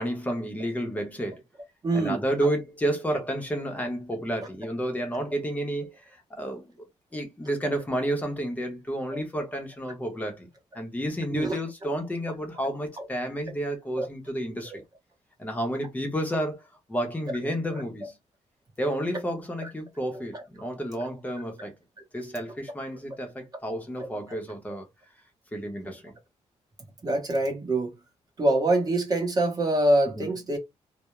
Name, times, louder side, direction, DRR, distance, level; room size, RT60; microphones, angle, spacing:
voice 1, 0.0-1.4 1.9-6.6 7.1-10.5 10.7-14.7 15.4-16.6 16.9-18.1 18.8-21.7 22.1-24.9 25.5-26.1 30.1-30.4, right 1 dB, 10° left, 0.7 m, -31 dB
voice 2, 1.8-2.2 9.1-9.2 11.3-11.6 11.8-11.9 13.0-13.1 14.0-14.1 14.7-14.8 20.3-20.4 24.0-24.1 27.0-27.9 28.4-30.6, right 1 dB, 30° right, 0.9 m, -25 dB
2.3 x 2.0 x 2.9 m
wide cardioid pair, 150°, 12 cm